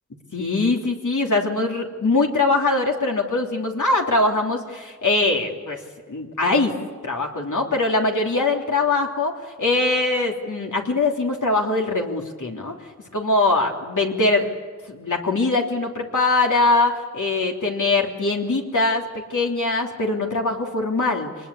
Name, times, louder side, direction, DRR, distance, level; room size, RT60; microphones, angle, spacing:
voice 1, 0.3-5.8 6.1-6.7 7.0-9.3 9.6-12.8 13.1-14.5 14.9-21.3, left 2 dB, 85° left, 1 dB, 3.3 m, -22 dB
27.0 x 20.0 x 8.5 m, 1.5 s
wide cardioid pair, 55°, 30 cm